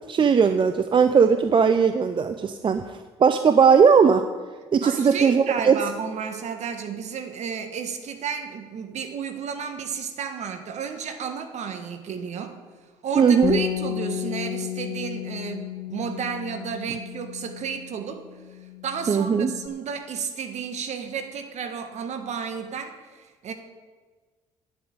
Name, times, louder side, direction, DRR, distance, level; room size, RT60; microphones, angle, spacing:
voice 1, 0.1-2.8 3.2-4.3 4.7-5.8 13.2-13.6 19.1-19.5, right 6 dB, 40° right, 9 dB, 0.6 m, -18 dB
voice 2, 4.8-12.6 13.0-18.2 18.8-23.5, right 6 dB, 60° right, 7 dB, 1.5 m, -32 dB
Bass guitar, 13.4-19.7, left 10 dB, 50° left, 1.4 m, -33 dB
9.2 x 8.6 x 8.0 m, 1.4 s
hypercardioid pair, 60°, 13 cm